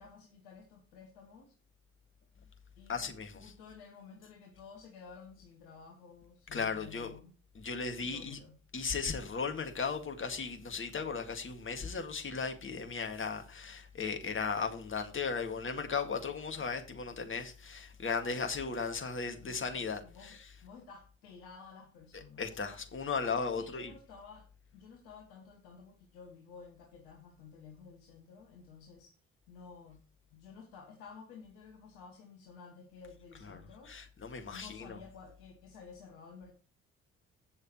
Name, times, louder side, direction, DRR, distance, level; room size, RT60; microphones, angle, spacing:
voice 1, 0.0-1.6 2.8-7.3 8.0-8.6 19.4-19.8 20.0-22.6 23.5-29.2 29.5-30.0 30.3-33.9 34.5-36.5, left 5 dB, 65° left, 1.8 m, -53 dB
voice 2, 2.9-3.5 6.5-7.1 7.5-8.4 8.7-20.4 22.1-23.9 33.5-35.0, left 5 dB, 30° left, 2.1 m, -36 dB
16.5 x 6.4 x 3.1 m
figure-of-eight pair, 45°, 39 cm